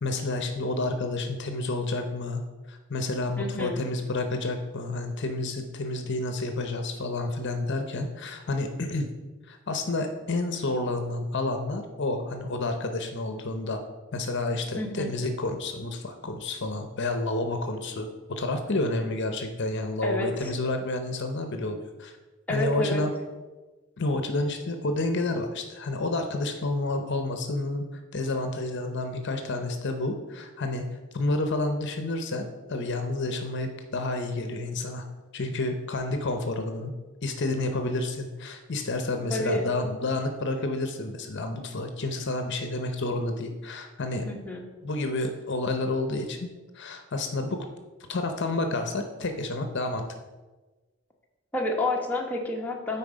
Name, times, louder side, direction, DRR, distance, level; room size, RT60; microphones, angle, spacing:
voice 1, 0.0-2.4 2.7-9.1 9.5-13.8 14.1-22.1 22.5-23.1 24.0-35.1 35.3-36.9 37.2-44.3 44.8-46.5 46.7-47.6 48.1-50.1, left 2 dB, 55° left, 6 dB, 0.7 m, -30 dB
voice 2, 3.4-3.8 14.8-15.1 20.0-20.5 22.5-23.0 39.3-39.7 44.2-44.6 51.5-53.0, left 1 dB, 10° left, -1 dB, 1.0 m, -29 dB
9.1 x 4.2 x 5.0 m, 1.2 s
head